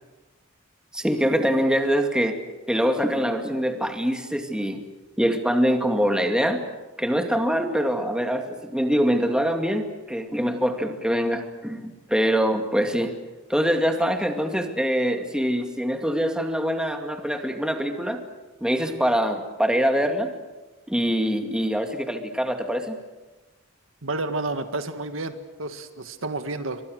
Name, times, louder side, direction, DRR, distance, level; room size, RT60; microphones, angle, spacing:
voice 1, 0.9-2.4 2.7-4.8 5.2-6.6 7.0-13.1 13.5-18.2 18.6-20.3 20.9-23.0, equal, 5° right, 4 dB, 2.4 m, -24 dB
voice 2, 24.0-26.8, right 2 dB, 75° right, 8 dB, 1.9 m, -30 dB
29.5 x 25.0 x 6.6 m, 1.1 s
head